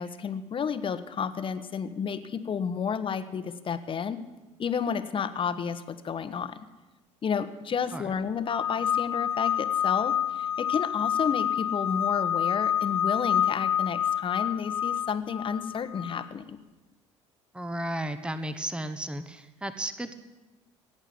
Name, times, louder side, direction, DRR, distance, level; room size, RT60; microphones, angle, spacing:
voice 1, 0.0-4.2 4.6-6.6 7.2-16.6, left 6 dB, 35° left, 12 dB, 1.2 m, -31 dB
sound 1, 8.5-16.3, left 9 dB, 90° left, 0.4 m, -28 dB
voice 2, 17.5-20.1, right 1 dB, 5° right, 10 dB, 1.2 m, -34 dB
17.0 x 8.9 x 8.5 m, 1.1 s
hypercardioid pair, 60°, 15 cm